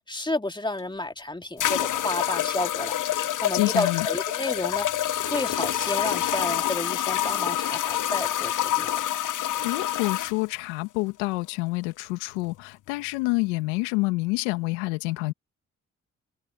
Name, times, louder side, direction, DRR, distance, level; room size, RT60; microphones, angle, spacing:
voice 1, 0.1-4.9 5.2-8.9, left 2 dB, 15° left, 2.8 m, -31 dB
sound 1, 0.8-0.9 1.6-10.4, left 12 dB, 60° left, 1.2 m, -27 dB
voice 2, 3.5-4.1 9.3-15.3, left 24 dB, 90° left, 2.1 m, -28 dB
hypercardioid pair, 40°, 35 cm